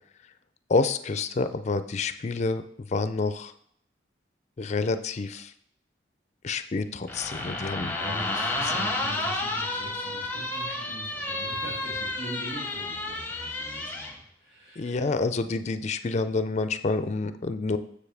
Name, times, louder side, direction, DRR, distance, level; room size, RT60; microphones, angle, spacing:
voice 1, 0.7-2.6 2.9-3.5 4.6-5.5 6.4-7.9 14.8-17.8, left 3 dB, 40° left, 10 dB, 0.4 m, -28 dB
sound 1, 7.1-14.1, left 2 dB, 10° left, 0.8 m, -31 dB
voice 2, 7.9-15.1, right 1 dB, 60° right, -4 dB, 2.7 m, -41 dB
7.2 x 6.8 x 3.4 m, 0.67 s
head